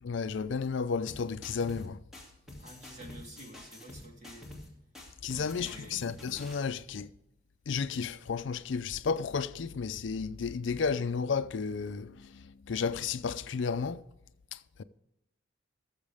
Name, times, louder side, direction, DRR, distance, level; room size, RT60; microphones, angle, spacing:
voice 1, 0.0-2.0 5.2-7.1 7.7-14.0 14.5-14.8, left 5 dB, 60° left, 0.4 m, -33 dB
sound 1, 1.1-1.9 2.1-4.7 4.9-6.7, left 1 dB, ahead, 2.6 m, -48 dB
voice 2, 2.6-4.5 5.2-6.0, equal, 35° right, 2.8 m, -50 dB
19.0 x 7.3 x 3.5 m
head